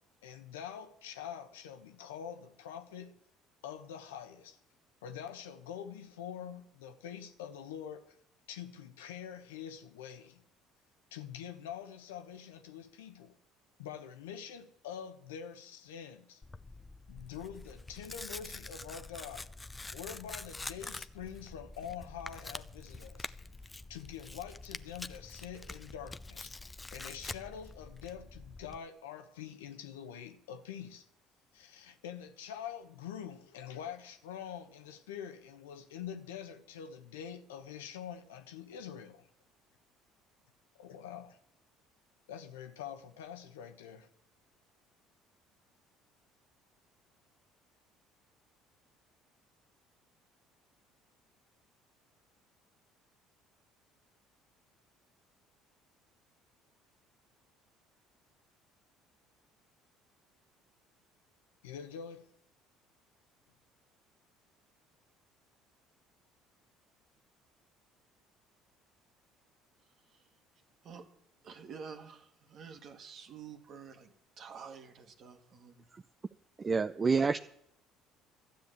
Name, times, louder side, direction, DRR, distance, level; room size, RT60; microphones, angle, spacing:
voice 1, 0.2-3.2 3.6-4.6 5.0-8.2 8.5-10.4 11.1-13.3 13.8-16.4 17.1-19.5 19.9-23.3 23.9-26.5 26.9-31.1 31.5-39.3 40.8-41.4 42.3-44.1 61.6-62.3, left 8 dB, 85° left, 1.0 m, -45 dB
Tearing, 16.4-28.8, left 3 dB, 20° left, 0.6 m, -46 dB
voice 2, 71.4-75.9 77.0-77.3, right 6 dB, 55° right, 1.8 m, -49 dB
voice 3, 76.6-77.4, right 4 dB, 30° right, 0.5 m, -27 dB
12.5 x 8.1 x 8.3 m
hypercardioid pair, 65°, 0 cm